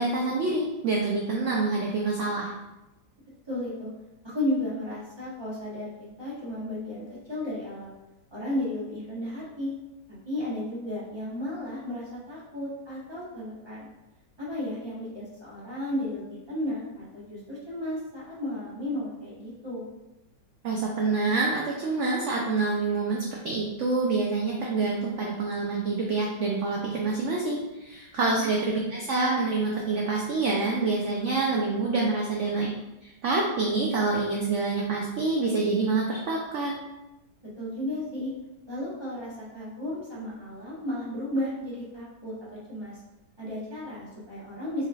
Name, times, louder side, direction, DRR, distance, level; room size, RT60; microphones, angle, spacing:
voice 1, 0.0-2.5 20.6-32.7 33.0-36.8, right 3 dB, 75° right, -2 dB, 0.6 m, -27 dB
voice 2, 3.5-3.9 4.2-5.9 6.2-7.9 8.3-9.7 10.2-13.9 14.4-19.9 28.2-28.5 37.5-38.3 38.7-43.0 43.4-44.9, left 1 dB, 20° right, -8 dB, 0.9 m, -33 dB
4.6 x 3.1 x 2.3 m, 0.98 s
omnidirectional pair, 1.9 m